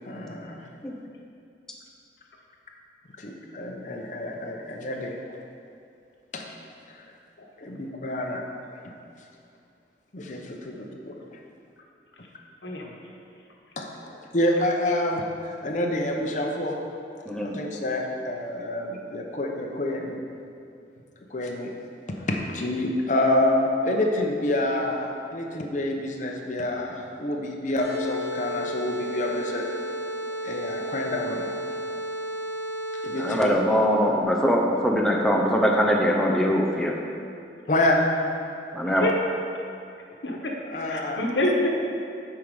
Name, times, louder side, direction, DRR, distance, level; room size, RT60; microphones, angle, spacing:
voice 1, 0.1-0.7 3.2-5.1 6.3-6.4 6.9-7.0 7.6-8.4 8.7-8.8 10.1-11.2 13.8-16.8 17.4-20.2 21.3-21.7 22.3-29.6 30.4-31.5 33.0-33.6 37.7-38.0 40.6-41.3, left 1 dB, 45° left, 1 dB, 0.8 m, -27 dB
voice 2, 17.3-17.6 33.2-37.0 38.7-39.1, equal, 5° left, -1 dB, 0.6 m, -22 dB
sound 1, 27.8-33.7, equal, 15° right, 1.7 m, -33 dB
voice 3, 40.9-41.8, left 1 dB, 80° left, -1 dB, 1.1 m, -25 dB
8.2 x 4.7 x 5.3 m, 2.5 s
head